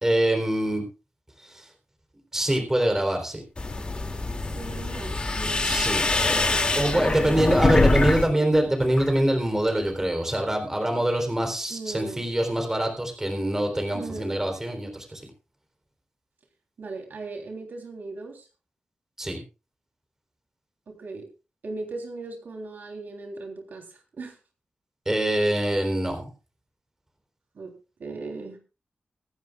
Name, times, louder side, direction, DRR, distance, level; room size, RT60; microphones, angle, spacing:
voice 1, 0.0-0.8 1.4-1.6 2.3-3.4 5.6-6.1 6.7-15.2 19.2-19.4 25.1-26.3, right 1 dB, 15° right, 4 dB, 3.7 m, -24 dB
sound 1, 3.6-8.2 8.5-9.2, left 2 dB, 35° left, 2.5 m, -24 dB
voice 2, 4.5-7.9 11.7-12.3 13.9-14.4 16.8-18.5 20.9-21.3 21.6-23.8 24.2-24.4 27.6-27.7 28.0-28.6, right 3 dB, 85° right, 3 dB, 3.4 m, -38 dB
24.5 x 10.5 x 2.4 m, 0.31 s
wide cardioid pair, 140°, 3 cm